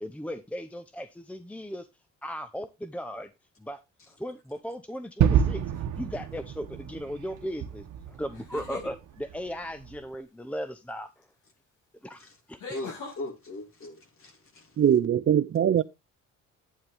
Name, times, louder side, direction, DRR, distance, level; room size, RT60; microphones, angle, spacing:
voice 1, 0.0-1.9 2.2-3.3 3.6-3.8 4.2-5.6 6.0-11.1 12.0-12.6, equal, 5° left, 0.7 m, -37 dB
Gunshot gunfire / Fireworks / Boom, 5.2-10.0, right 8 dB, 70° right, 1.1 m, -29 dB
sound 1, 5.7-6.2 8.3-8.9 11.2-11.3 12.6-13.2, left 4 dB, 80° left, 5.4 m, -40 dB
voice 2, 12.7-14.8, left 2 dB, 45° left, 3.2 m, -40 dB
voice 3, 14.8-15.8, right 9 dB, 45° right, 0.6 m, -22 dB
9.5 x 8.6 x 3.4 m
cardioid pair, 90°, 30 cm